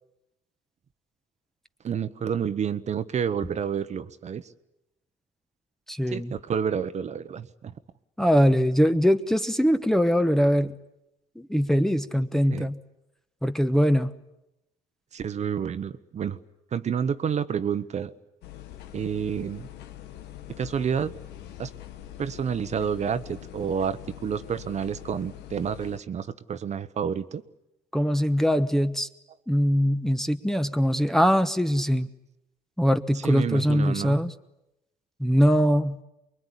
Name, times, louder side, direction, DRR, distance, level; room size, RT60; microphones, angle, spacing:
voice 1, 1.8-4.5 6.1-7.7 12.5-12.7 15.1-16.4 16.7-18.1 18.9-19.7 20.6-21.1 21.6-21.7 22.2-27.4 33.1-34.2, right 7 dB, 45° right, 12 dB, 1.1 m, -29 dB
voice 2, 5.9-6.3 8.2-10.8 11.4-12.8 13.4-14.1 27.9-29.1 29.5-32.1 32.8-34.3 35.2-36.0, equal, ahead, 7 dB, 1.1 m, -22 dB
sound 1, 18.4-26.0, left 13 dB, 80° left, 1.7 m, -43 dB
24.5 x 22.0 x 10.0 m, 0.90 s
cardioid pair, 110°, 17 cm